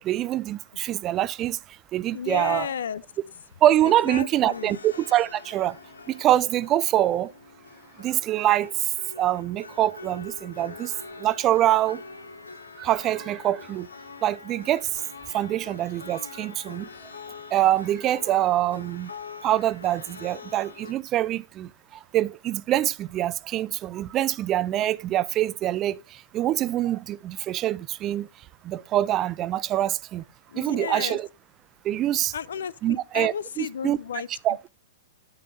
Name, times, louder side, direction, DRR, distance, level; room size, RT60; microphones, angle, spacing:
voice 1, 0.0-1.6 1.9-2.7 3.6-5.8 6.1-7.3 8.0-8.7 9.2-10.9 11.2-12.0 12.8-13.9 14.2-14.9 15.3-16.9 17.5-19.1 19.4-21.7 22.1-26.0 26.3-28.3 28.6-30.2 30.6-31.3 31.8-32.3 32.8-34.0 34.4-34.6, right 13 dB, 30° right, 0.3 m, -24 dB
voice 2, 2.1-3.0 3.8-4.8 30.5-31.2 32.3-34.3, left 8 dB, 70° left, 0.3 m, -33 dB
sound 1, 3.8-20.9, left 4 dB, 85° left, 0.9 m, -44 dB
9.1 x 6.7 x 2.6 m
figure-of-eight pair, 110°, 0 cm